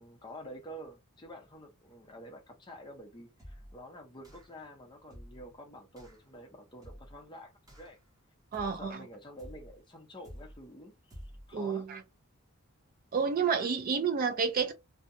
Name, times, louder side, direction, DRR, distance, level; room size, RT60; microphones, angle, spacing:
voice 1, 0.0-7.5 7.8-8.0 8.6-11.9, equal, 20° left, 0.6 m, -49 dB
sound 1, 3.4-3.8 4.2-4.6 5.1-5.5 6.0-6.2 6.8-7.2 7.7-8.1 8.5-8.9 9.4-9.8 10.2-10.7 11.1-11.5, equal, 15° right, 0.8 m, -50 dB
voice 2, 8.5-9.0 11.5-12.0 13.1-14.7, right 6 dB, 40° right, 0.3 m, -30 dB
2.7 x 2.1 x 2.5 m
head